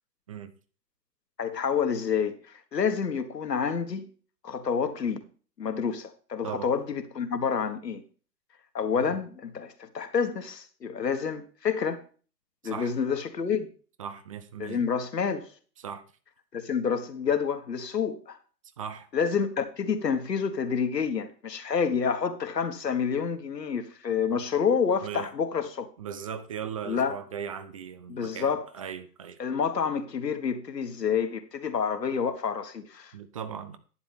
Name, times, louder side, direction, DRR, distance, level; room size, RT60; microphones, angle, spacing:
voice 1, 1.4-2.4 2.7-4.1 4.4-5.2 5.6-8.0 8.7-12.0 12.6-13.7 14.6-15.5 16.5-18.4 19.1-25.9 26.9-27.2 28.1-28.6 29.4-33.1, left 6 dB, 75° left, 1.7 m, -28 dB
voice 2, 14.0-14.8 15.8-16.0 18.8-19.1 24.3-24.4 25.0-25.3 26.0-29.4 33.1-33.8, right 8 dB, 20° right, 0.5 m, -38 dB
11.5 x 9.6 x 3.5 m
figure-of-eight pair, 125°, 49 cm